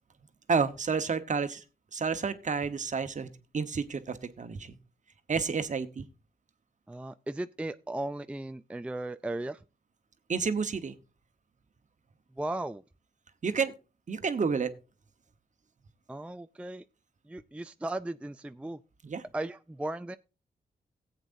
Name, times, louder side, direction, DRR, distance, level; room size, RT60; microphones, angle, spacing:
voice 1, 0.5-1.6 1.9-3.3 3.5-4.8 5.3-6.1 10.3-10.9 13.4-13.7 14.1-14.7 19.0-19.2, right 5 dB, 45° right, 1.2 m, -30 dB
voice 2, 6.9-9.6 12.4-12.8 16.1-16.8 17.2-18.8 19.3-20.2, right 1 dB, 5° right, 0.4 m, -36 dB
17.0 x 8.1 x 2.6 m
cardioid pair, 70°, 17 cm